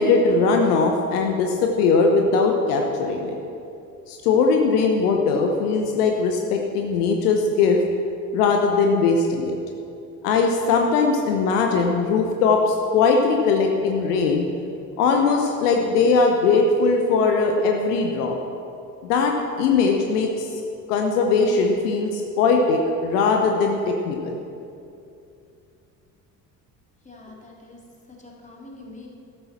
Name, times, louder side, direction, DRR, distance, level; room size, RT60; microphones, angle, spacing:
voice 1, 0.0-3.4 4.1-7.8 8.3-9.6 10.2-14.4 15.0-18.4 19.0-20.5 20.9-24.4, left 4 dB, 65° left, 2 dB, 1.1 m, -20 dB
voice 2, 27.0-27.8 28.1-29.1, left 2 dB, 15° left, -2 dB, 3.0 m, -44 dB
13.5 x 12.5 x 4.3 m, 2.6 s
figure-of-eight pair, 50°, 49 cm